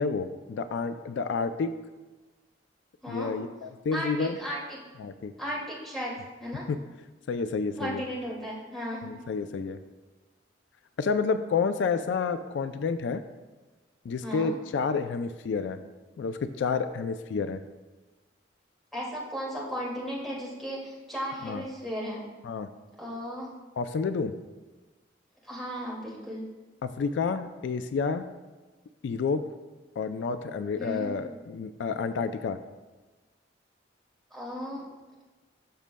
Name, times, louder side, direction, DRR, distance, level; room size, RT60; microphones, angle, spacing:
voice 1, 0.0-1.7 3.1-4.4 5.0-5.3 7.3-8.0 9.0-9.8 11.0-13.2 14.0-15.8 16.2-17.6 21.4-21.6 22.4-22.7 23.8-24.3 26.8-28.2 29.0-29.4 30.0-32.6, left 5 dB, 75° left, 10 dB, 0.3 m, -29 dB
voice 2, 3.0-3.3 3.9-4.8 5.4-6.1 6.4-6.7 7.8-9.1 14.2-14.5 18.9-22.2 23.0-23.5 25.4-26.5 30.8-31.1 34.3-34.8, equal, ahead, -7 dB, 2.1 m, -35 dB
12.0 x 6.2 x 2.2 m, 1.3 s
head